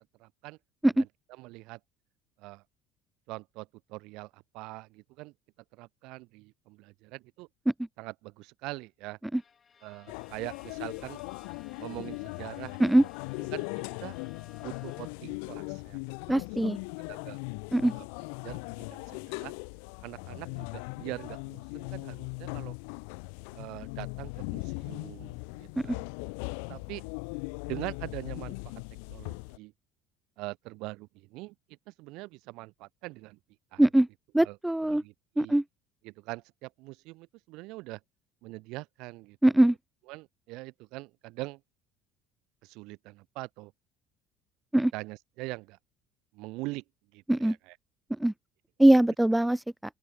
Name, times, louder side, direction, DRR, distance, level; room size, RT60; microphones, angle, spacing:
voice 1, 0.2-0.6 1.0-1.1 1.4-1.8 2.4-2.6 3.3-5.3 5.7-7.5 8.0-9.2 9.8-11.2 11.8-13.1 13.5-14.2 14.6-16.0 16.3-16.7 17.1-17.4 17.9-18.0 18.4-19.5 20.0-22.8 23.5-26.1 26.7-27.0 27.6-28.7 29.1-29.7 30.4-31.5 31.9-33.4 33.7-33.8 34.4-34.6 34.9-35.6 36.0-38.0 38.4-39.4 40.1-41.6 42.6-43.7 44.9-45.8 46.3-46.8 47.1-47.7, right 22 dB, 75° right, 1.3 m, -43 dB
Bowed string instrument, 9.3-15.4, left 6 dB, 30° left, 6.4 m, -58 dB
sound 1, 10.1-29.6, left 40 dB or more, 85° left, 3.2 m, -39 dB
voice 2, 16.3-16.8 17.7-17.9 25.9-26.0 33.8-34.1 34.3-35.0 35.4-35.6 39.4-39.8 44.7-44.9 47.3-47.6 48.2-48.3 48.8-49.6, right 1 dB, 5° right, 0.3 m, -22 dB
open air
supercardioid pair, 110°, 0 cm